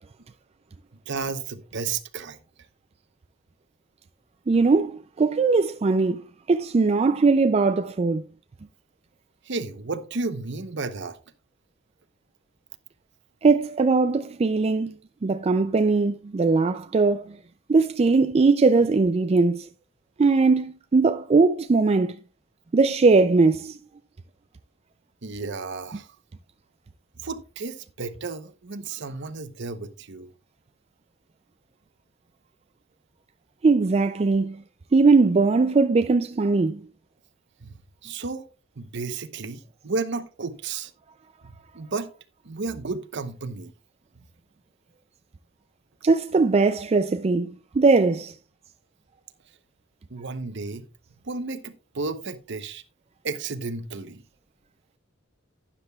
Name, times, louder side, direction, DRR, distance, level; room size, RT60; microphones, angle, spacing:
voice 1, 1.1-2.4 9.4-11.2 25.2-26.1 27.2-30.3 37.6-37.7 38.0-38.5 38.8-40.9 41.4-42.1 42.4-43.7 50.1-50.8 51.2-52.8 53.2-54.2, right 4 dB, 60° right, 0.9 m, -33 dB
voice 2, 4.5-6.2 6.5-8.2 13.4-14.9 15.2-17.4 17.7-19.7 20.2-22.2 22.7-23.8 33.6-34.6 34.9-36.8 46.0-48.3, right 4 dB, 30° right, 0.4 m, -20 dB
12.0 x 9.9 x 2.3 m
head